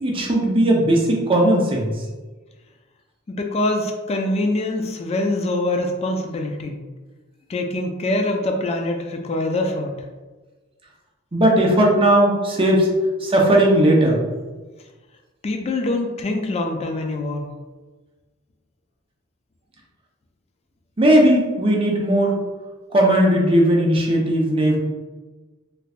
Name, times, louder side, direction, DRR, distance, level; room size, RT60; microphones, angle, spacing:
voice 1, 0.0-1.9 11.3-12.9 13.2-14.2 21.0-22.3 22.9-24.8, right 1 dB, 25° right, -2 dB, 0.7 m, -17 dB
voice 2, 3.3-6.8 7.5-10.0 15.4-17.5, left 2 dB, 30° left, 3 dB, 0.3 m, -24 dB
3.2 x 3.1 x 2.4 m, 1.3 s
head